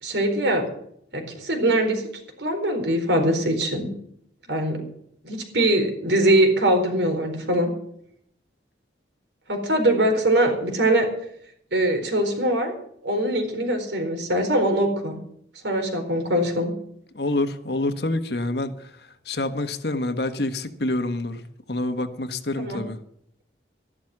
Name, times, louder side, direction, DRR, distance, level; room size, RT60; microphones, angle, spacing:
voice 1, 0.0-0.7 1.1-2.0 2.4-3.9 4.5-4.8 5.2-7.7 9.5-11.1 11.7-12.7 13.0-15.2 15.6-16.7 22.6-22.8, right 1 dB, 85° right, 4.3 m, -22 dB
voice 2, 17.1-18.9 19.2-21.4 21.7-23.0, left 2 dB, 70° left, 1.5 m, -27 dB
14.0 x 11.5 x 6.1 m
head